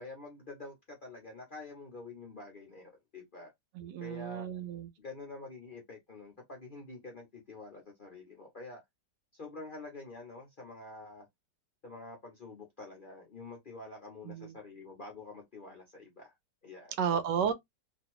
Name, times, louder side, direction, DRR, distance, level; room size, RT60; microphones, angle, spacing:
voice 1, 0.0-3.5 4.0-4.5 5.0-8.8 9.3-11.3 11.8-16.3 16.6-16.9, left 3 dB, 45° left, 0.7 m, -47 dB
voice 2, 3.7-4.9 14.2-14.6 17.0-17.5, right 7 dB, 80° right, 1.2 m, -32 dB
2.9 x 2.6 x 2.9 m
omnidirectional pair, 1.9 m